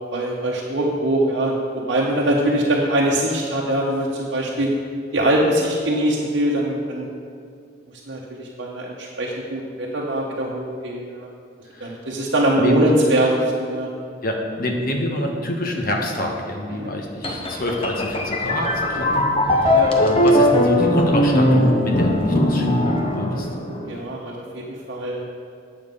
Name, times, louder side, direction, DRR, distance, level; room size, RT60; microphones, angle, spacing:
voice 1, 0.0-4.7 5.1-7.1 8.1-11.3 11.8-13.9 16.8-16.9 19.1-19.2 19.7-19.9 23.3-23.5 23.8-25.2, right 1 dB, 60° right, -4 dB, 1.0 m, -22 dB
voice 2, 14.2-23.5, left 1 dB, 45° left, 1 dB, 1.2 m, -27 dB
sound 1, 17.2-23.9, left 1 dB, 30° left, 0.8 m, -19 dB
9.2 x 7.0 x 5.3 m, 2.4 s
head